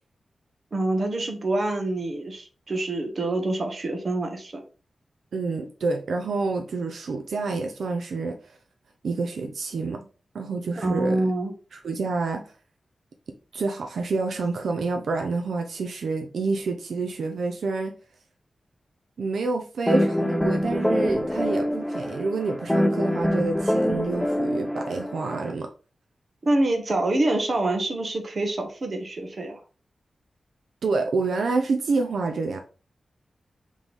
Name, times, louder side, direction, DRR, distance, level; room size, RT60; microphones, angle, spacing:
voice 1, 0.7-4.6 10.7-11.5 26.4-29.6, right 2 dB, 40° right, 0.9 m, -26 dB
voice 2, 5.3-8.6 9.0-10.1 10.3-11.3 11.7-12.5 13.5-18.0 19.2-25.7 30.8-32.6, right 3 dB, 80° right, 0.5 m, -28 dB
sound 1, 19.9-25.5, left 1 dB, 5° left, 0.3 m, -25 dB
3.6 x 3.1 x 3.9 m
wide cardioid pair, 160°, 0 cm